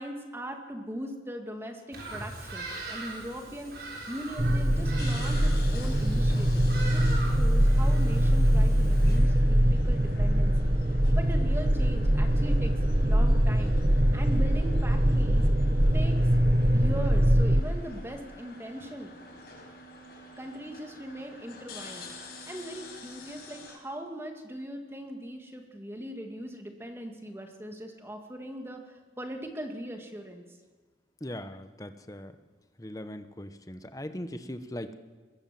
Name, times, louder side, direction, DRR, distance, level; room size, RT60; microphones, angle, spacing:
voice 1, 0.0-3.8 4.1-10.7 11.1-12.7 13.0-13.8 14.1-15.4 15.9-16.2 16.7-19.1 20.4-22.1 22.4-30.4, equal, 15° right, 4 dB, 2.3 m, -40 dB
Bird vocalization bird call bird song, 1.9-9.2, right 2 dB, 60° right, 7.1 m, -41 dB
sound 1, 4.4-17.6, equal, 35° right, 1.1 m, -23 dB
sound 2, 4.7-23.8, left 2 dB, 60° left, 5.8 m, -48 dB
voice 2, 31.2-32.4 32.8-34.9, left 1 dB, 20° left, 9 dB, 1.2 m, -39 dB
22.0 x 21.5 x 7.8 m, 1.4 s
head